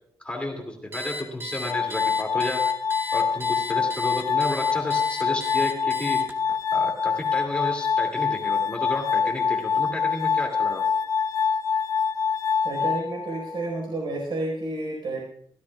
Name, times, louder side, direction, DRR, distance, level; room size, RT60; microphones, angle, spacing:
voice 1, 0.2-2.6 3.1-6.2 6.7-10.8, left 1 dB, 15° left, 1 dB, 2.4 m, -32 dB
Alarm, 0.9-6.6, left 2 dB, 25° right, 1.2 m, -35 dB
Glass, 1.7-13.7, left 6 dB, 45° left, 0.5 m, -25 dB
voice 2, 12.6-15.2, right 2 dB, 60° right, -1 dB, 4.5 m, -30 dB
25.0 x 13.5 x 2.4 m, 0.66 s
wide cardioid pair, 175°, 9 cm